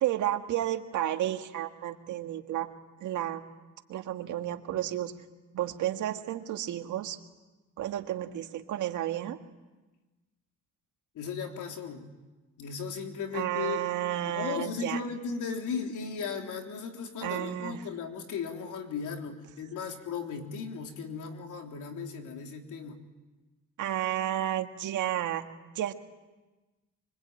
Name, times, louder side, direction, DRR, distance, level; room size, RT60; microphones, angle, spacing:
voice 1, 0.0-2.7 3.0-3.4 3.9-5.1 5.5-7.2 7.8-9.4 13.3-15.0 17.2-17.8 23.8-25.4 25.8-25.9, right 12 dB, 80° right, 6 dB, 1.9 m, -31 dB
voice 2, 11.2-12.1 12.6-13.9 14.2-23.0, left 6 dB, 80° left, 3 dB, 3.6 m, -36 dB
25.0 x 23.5 x 9.1 m, 1.2 s
cardioid pair, 90°, 30 cm